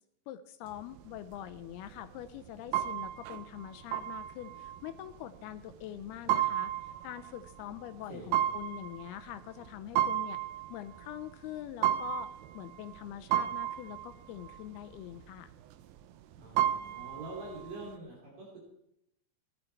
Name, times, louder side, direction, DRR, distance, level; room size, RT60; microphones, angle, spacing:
voice 1, 0.3-6.7 7.0-10.4 10.7-15.5, left 12 dB, 80° left, 11 dB, 2.4 m, -44 dB
sound 1, 0.7-18.0, right 12 dB, 85° right, 2.1 m, -35 dB
voice 2, 8.1-8.6 16.4-18.6, right 2 dB, 55° right, -2 dB, 4.4 m, -45 dB
16.0 x 12.0 x 4.6 m, 0.79 s
omnidirectional pair, 4.9 m